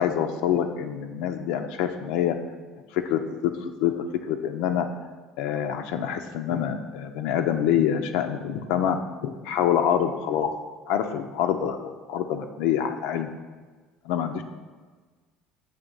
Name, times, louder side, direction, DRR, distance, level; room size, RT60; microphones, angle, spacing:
voice 1, 0.0-2.4 2.9-3.9 4.3-4.9 5.4-10.5 10.9-13.3 14.1-14.4, left 9 dB, 75° left, 6 dB, 0.4 m, -26 dB
7.1 x 3.1 x 5.2 m, 1.4 s
cardioid pair, 160°, 0 cm